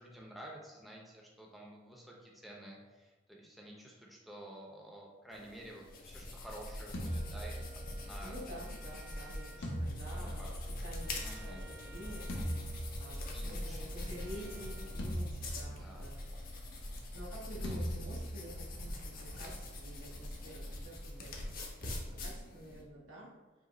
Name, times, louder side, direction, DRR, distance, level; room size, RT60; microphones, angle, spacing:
voice 1, 0.0-8.4 10.1-10.5 11.2-11.7 13.3-13.8 15.6-16.1 17.6-17.9, right 1 dB, ahead, -2 dB, 0.6 m, -51 dB
sound 1, 5.3-22.8, left 1 dB, 50° left, 0.7 m, -43 dB
sound 2, 6.9-8.1 9.6-11.1 12.3-13.5 15.0-16.2 17.6-18.8, equal, 80° left, 0.8 m, -40 dB
Wind instrument woodwind instrument, 7.0-15.0, right 1 dB, 60° right, 0.6 m, -57 dB
voice 2, 8.2-10.5 10.8-12.3 12.9-16.3 17.1-21.3 21.8-23.3, equal, 85° right, -4 dB, 1.2 m, -49 dB
5.1 x 2.3 x 3.9 m, 1.2 s
head